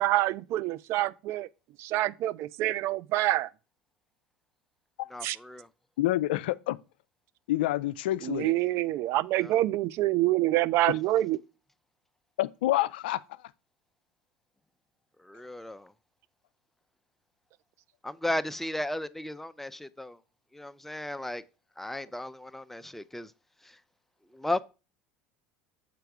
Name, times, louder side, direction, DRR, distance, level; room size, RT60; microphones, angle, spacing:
voice 1, 0.0-1.5 1.8-3.5 5.2-5.3 8.2-11.4, right 15 dB, 55° right, 0.4 m, -26 dB
voice 2, 6.0-6.8 7.5-8.5 10.9-11.0 12.4-13.2, left 15 dB, 75° left, 0.4 m, -28 dB
voice 3, 15.2-15.9 18.0-20.2 20.5-21.4 21.8-23.3 23.6-23.8 24.3-24.6, left 1 dB, 5° left, 0.5 m, -35 dB
6.7 x 4.5 x 4.8 m
hypercardioid pair, 80°, 5 cm